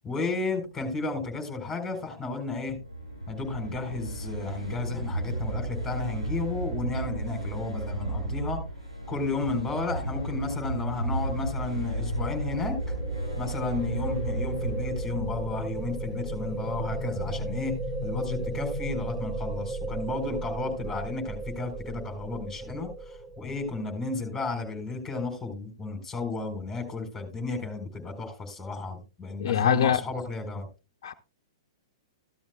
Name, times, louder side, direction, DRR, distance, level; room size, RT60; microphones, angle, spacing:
voice 1, 0.0-2.8 3.3-8.6 9.1-12.8 13.4-17.8 18.0-30.7, left 3 dB, 10° left, 6 dB, 4.0 m, -33 dB
sound 1, 2.7-16.7, right 1 dB, 90° right, 7.7 m, -33 dB
sound 2, 12.0-24.1, right 2 dB, 20° right, 1.6 m, -35 dB
voice 2, 29.4-30.0 31.0-31.1, left 8 dB, 60° left, 7 dB, 0.7 m, -23 dB
14.5 x 12.5 x 2.3 m, 0.30 s
figure-of-eight pair, 110°, 3 cm